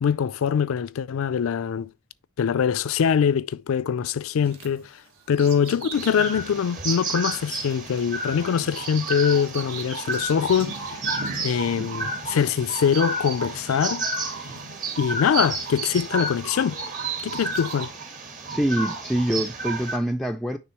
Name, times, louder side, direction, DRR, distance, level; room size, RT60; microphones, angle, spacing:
voice 1, 0.0-1.9 2.4-4.9 5.3-11.0 11.4-14.1 15.0-16.8 17.2-17.9, left 7 dB, 75° left, 0.4 m, -23 dB
Bird vocalization bird call bird song, 4.4-16.5 17.0-17.9, right 4 dB, 80° right, 1.5 m, -42 dB
sound 1, 5.9-20.0, right 3 dB, 40° right, 1.3 m, -31 dB
sound 2, 11.6-12.7 13.7-15.0 15.4-16.3 16.6-17.1, right 4 dB, 60° right, 3.1 m, -49 dB
voice 2, 18.5-20.6, right 1 dB, ahead, 0.3 m, -25 dB
9.4 x 3.5 x 3.0 m
head